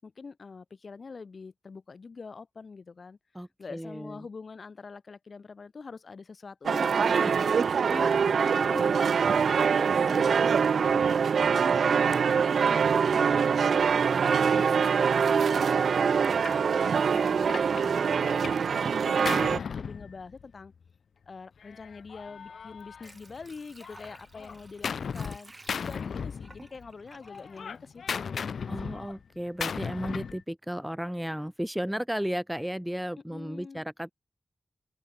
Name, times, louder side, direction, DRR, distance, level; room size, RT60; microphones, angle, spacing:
voice 1, 0.0-3.2 3.6-7.5 7.9-12.2 12.5-13.8 14.3-20.7 21.2-28.7 33.3-33.8, left 4 dB, 45° left, 5.1 m, -45 dB
voice 2, 3.3-4.2 7.1-7.3 9.9-10.8 14.1-14.2 14.5-14.8 28.7-34.1, equal, 5° right, 1.1 m, -34 dB
sound 1, 6.6-19.6, right 6 dB, 75° right, 0.3 m, -24 dB
Gunshot gunfire, 16.4-16.6 17.2-18.7 19.0-20.7 21.6-23.4 23.8-25.4 25.7-26.9 27.2-30.4, left 6 dB, 75° left, 0.7 m, -37 dB
Water / Sink (filling or washing), 22.6-28.5 28.9-29.0, right 2 dB, 20° right, 2.2 m, -54 dB
open air
wide cardioid pair, 165°, 0 cm